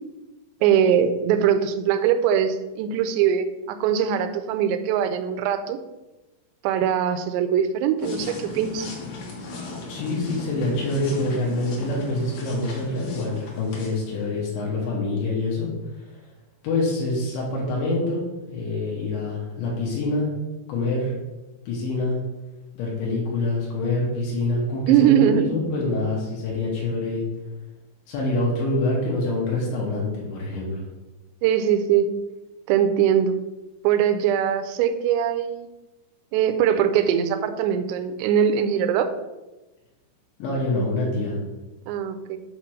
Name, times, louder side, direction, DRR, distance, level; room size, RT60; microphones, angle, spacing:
voice 1, 0.6-5.8 6.6-8.9 24.9-25.5 31.4-32.1 32.7-33.4 33.8-35.7 36.3-39.1 41.9-42.4, right 9 dB, 85° right, 8 dB, 2.6 m, -21 dB
sound 1, 8.0-14.5, left 3 dB, 60° left, 2.8 m, -37 dB
voice 2, 9.9-15.7 16.0-16.1 16.6-20.3 20.7-21.1 21.7-22.2 22.8-27.2 28.1-30.8 40.4-41.4, left 2 dB, 75° left, -4 dB, 3.7 m, -26 dB
8.3 x 3.0 x 6.3 m, 1.1 s
omnidirectional pair, 5.3 m